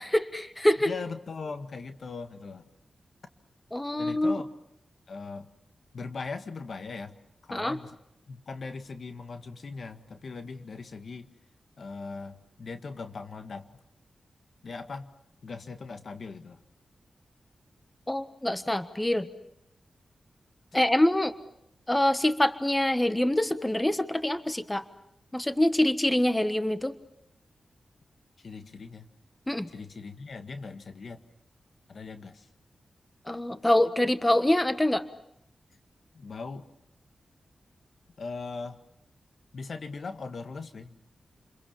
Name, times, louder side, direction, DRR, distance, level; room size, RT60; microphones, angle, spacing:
voice 1, 0.0-0.9 3.7-4.4 7.5-7.8 18.1-19.3 20.7-21.3 21.9-24.8 25.3-26.9 29.5-29.7 33.3-35.0, left 1 dB, 15° left, 11 dB, 1.4 m, -25 dB
voice 2, 0.8-2.6 4.0-4.5 5.1-5.5 5.9-7.1 7.4-8.0 8.3-11.3 11.8-13.7 14.6-15.1 15.4-16.6 28.4-29.1 29.7-31.2 31.9-32.5 36.1-36.6 38.2-38.8 39.5-41.0, left 4 dB, 70° left, 8 dB, 1.7 m, -39 dB
29.5 x 22.0 x 7.2 m, 0.78 s
cardioid pair, 60°, 0 cm